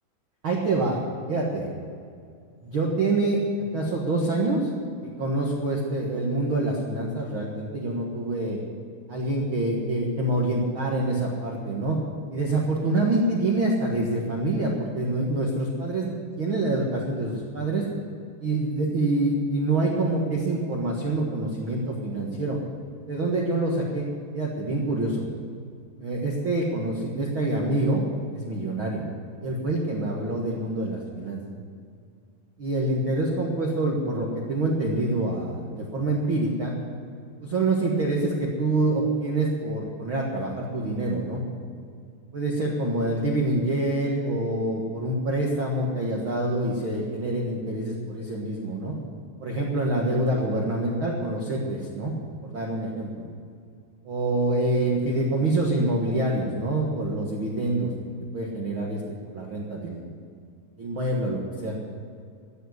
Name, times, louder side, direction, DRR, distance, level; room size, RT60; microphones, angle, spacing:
voice 1, 0.4-1.0 1.3-1.7 2.6-3.4 3.7-4.7 5.0-8.6 9.1-12.0 12.3-17.8 18.4-22.6 23.1-24.0 24.3-25.2 26.0-28.0 28.3-29.0 29.4-31.4 32.6-36.7 37.4-41.4 42.3-48.9 49.4-52.1 52.4-53.2 54.0-57.9 58.3-59.0 59.3-60.1 60.8-62.0, right 2 dB, 70° right, -2 dB, 1.2 m, -26 dB
15.0 x 7.4 x 9.5 m, 2.3 s
omnidirectional pair, 4.9 m